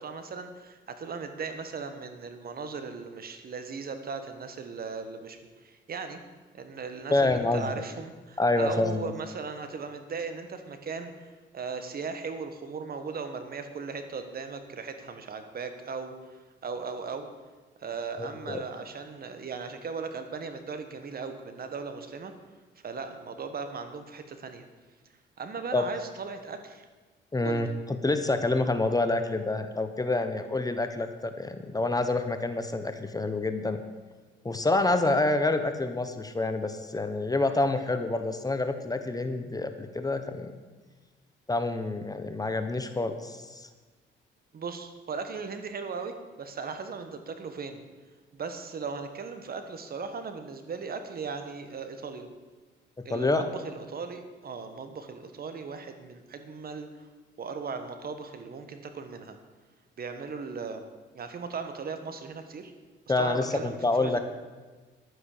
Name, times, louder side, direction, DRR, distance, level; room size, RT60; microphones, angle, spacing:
voice 1, 0.0-5.4 5.6-6.2 6.5-17.3 17.8-22.3 22.8-24.7 25.4-26.8 27.4-27.6 44.5-47.8 48.3-52.3 53.0-57.1 57.4-59.4 60.0-60.9 61.1-62.7 63.2-64.2, right 5 dB, 50° right, 8 dB, 1.5 m, -37 dB
voice 2, 7.1-7.7 8.4-9.1 18.2-18.6 25.7-25.9 27.3-33.8 34.4-40.5 41.5-43.7 53.1-53.5 63.1-64.2, left 2 dB, 20° left, 8 dB, 1.0 m, -27 dB
11.0 x 9.4 x 6.7 m, 1.3 s
cardioid pair, 90°, 20 cm